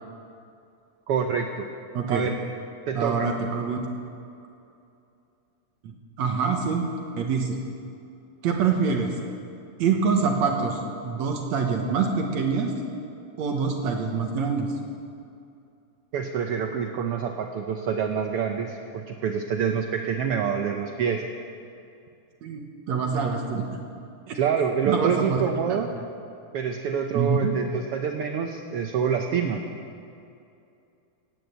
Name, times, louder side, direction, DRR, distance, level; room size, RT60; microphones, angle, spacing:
voice 1, 1.1-1.7 2.1-2.4 2.9-3.3 16.1-21.2 24.3-25.9 26.5-29.6, right 7 dB, 85° right, 4 dB, 1.2 m, -26 dB
voice 2, 1.9-2.3 3.0-3.8 5.8-6.9 7.2-7.6 8.4-9.1 9.8-12.7 13.4-14.7 22.4-23.6 24.3-24.4 24.8-25.4 25.7-26.0 27.1-27.5, right 5 dB, 65° right, 2 dB, 2.3 m, -25 dB
17.0 x 9.5 x 8.0 m, 2.6 s
omnidirectional pair, 3.6 m